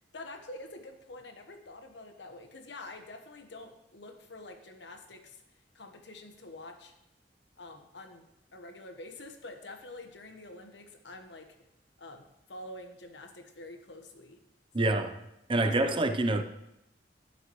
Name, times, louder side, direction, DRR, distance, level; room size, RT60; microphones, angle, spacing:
voice 1, 0.1-5.4 5.7-6.9 7.6-11.6 12.0-14.4 14.8-15.0 15.5-15.7, left 2 dB, 85° left, 1.3 m, -47 dB
voice 2, 14.7-15.2 15.5-16.4, right 2 dB, 30° right, 0.7 m, -26 dB
11.0 x 10.5 x 3.1 m
head